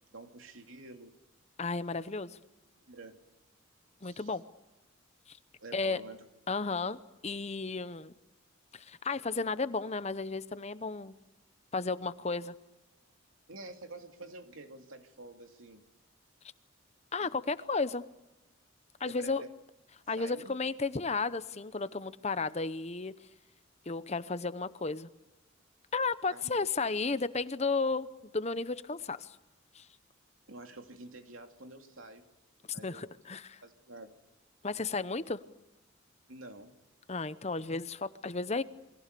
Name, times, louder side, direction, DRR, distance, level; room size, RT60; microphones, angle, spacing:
voice 1, 0.1-1.1 2.9-3.2 4.0-4.4 5.6-6.2 13.5-15.8 17.2-17.4 19.1-19.5 20.2-20.5 26.3-26.5 30.5-32.2 32.7-33.0 33.6-34.1 36.3-36.7, right 2 dB, 75° right, 5 dB, 2.8 m, -48 dB
voice 2, 1.6-2.4 4.0-4.4 5.3-5.4 5.7-6.0 6.5-8.1 8.7-11.1 11.7-12.5 17.1-18.0 19.0-19.4 20.1-23.1 23.9-25.1 25.9-28.1 28.3-29.4 29.7-29.9 32.8-33.6 34.6-35.4 37.1-38.6, left 4 dB, 30° left, 14 dB, 0.9 m, -33 dB
29.0 x 22.5 x 6.9 m, 1.0 s
head